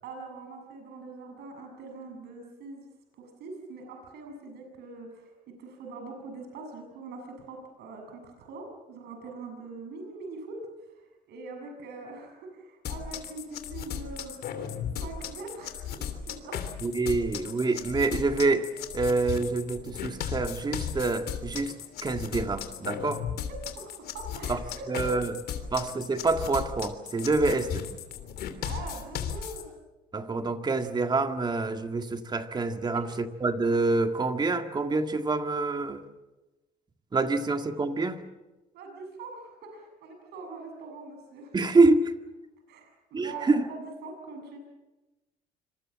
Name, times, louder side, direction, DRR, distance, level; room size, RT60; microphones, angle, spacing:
voice 1, 0.0-2.8 3.2-5.3 5.6-10.6 10.9-16.0 16.3-16.6 23.5-25.1 28.6-29.7 38.7-41.6 42.7-44.6, right 3 dB, 75° right, 3 dB, 7.2 m, -43 dB
sound 1, 12.8-29.6, left 8 dB, 65° left, 3.0 m, -36 dB
voice 2, 16.8-18.7 18.9-23.2 24.5-24.6 24.9-25.3 25.7-27.9 30.1-36.0 37.1-38.2 41.5-42.1 43.1-43.7, right 3 dB, 25° right, 7 dB, 1.9 m, -26 dB
26.5 x 22.0 x 7.5 m, 1.1 s
cardioid pair, 110°, 17 cm